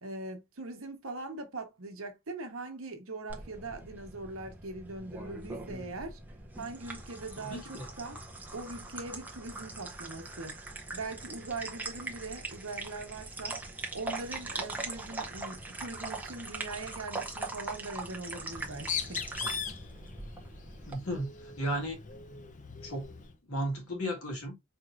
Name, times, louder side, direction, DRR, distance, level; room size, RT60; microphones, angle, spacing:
voice 1, 0.0-6.2 6.6-8.2 8.5-10.5 10.9-13.6 13.9-19.2, right 3 dB, 75° right, 1.1 m, -41 dB
sound 1, 3.3-20.9, right 2 dB, 10° right, 0.6 m, -41 dB
voice 2, 7.4-7.9 20.9-22.0 22.8-23.1 23.5-24.6, equal, 85° left, 1.7 m, -34 dB
Bird, 18.5-23.3, left 7 dB, 35° left, 0.6 m, -40 dB
4.5 x 3.0 x 2.4 m
head